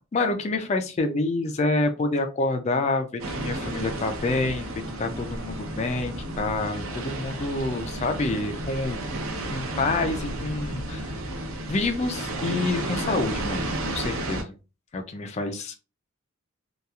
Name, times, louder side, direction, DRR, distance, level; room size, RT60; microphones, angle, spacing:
voice 1, 0.1-4.7 5.0-9.0 9.5-11.2 11.7-13.6 13.9-14.5 14.9-15.8, left 2 dB, 30° left, 6 dB, 0.3 m, -27 dB
sound 1, 3.2-14.4, right 1 dB, 70° right, 0.6 m, -32 dB
2.8 x 2.3 x 2.3 m, 0.31 s
head